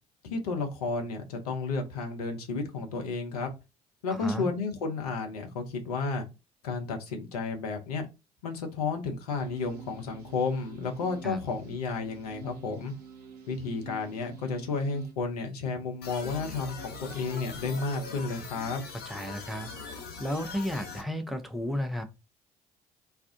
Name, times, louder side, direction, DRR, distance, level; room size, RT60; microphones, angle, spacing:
voice 1, 0.2-3.5 4.0-6.3 6.6-8.1 8.4-12.9 13.5-18.8, left 4 dB, 75° left, 0.8 m, -32 dB
voice 2, 4.1-4.5 11.2-11.4 19.1-22.0, equal, ahead, 0.7 m, -33 dB
sound 1, 9.4-15.1, right 5 dB, 75° right, 0.8 m, -48 dB
sound 2, 16.0-21.0, left 4 dB, 55° left, 1.0 m, -42 dB
2.5 x 2.3 x 3.7 m
figure-of-eight pair, 50°, 20 cm